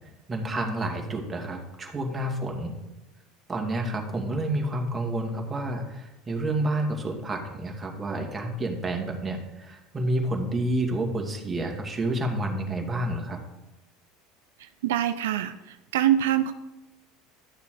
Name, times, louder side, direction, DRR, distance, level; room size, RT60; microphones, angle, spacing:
voice 1, 0.3-2.7 3.5-13.4, right 1 dB, 25° right, 2 dB, 2.3 m, -29 dB
voice 2, 14.8-15.5 15.9-16.5, right 11 dB, 85° right, 10 dB, 0.5 m, -23 dB
12.0 x 6.8 x 4.8 m, 0.99 s
hypercardioid pair, 90°, 0 cm